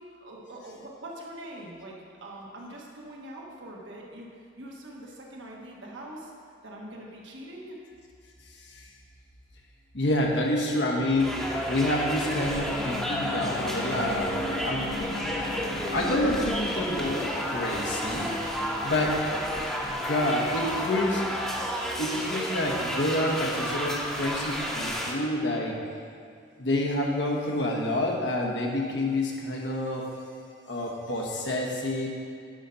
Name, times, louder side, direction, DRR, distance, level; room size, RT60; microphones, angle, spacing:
voice 1, 0.0-4.3 4.6-6.3 6.6-7.8, right 1 dB, 85° right, -2 dB, 1.3 m, -43 dB
sound 1, 8.0-22.1, left 1 dB, 30° left, 0.7 m, -41 dB
voice 2, 9.9-11.3 11.7-15.0 15.4-15.5 15.9-18.3 18.8-19.2 19.5-21.3 22.0-25.8 26.6-30.1 30.7-32.1, left 1 dB, 75° left, -1 dB, 1.1 m, -28 dB
sound 2, 11.2-25.1, equal, 5° left, 0.9 m, -31 dB
10.0 x 3.9 x 5.6 m, 2.3 s
head